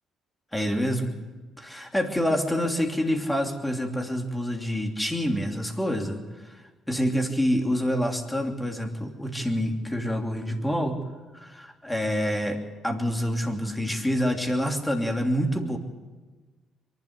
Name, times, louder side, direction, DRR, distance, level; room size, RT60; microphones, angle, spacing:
voice 1, 0.5-1.1 1.6-6.6 6.9-11.0 11.3-12.6 12.8-15.8, equal, 10° left, 2 dB, 3.0 m, -27 dB
23.0 x 12.0 x 9.6 m, 1.3 s
cardioid pair, 90°, 0 cm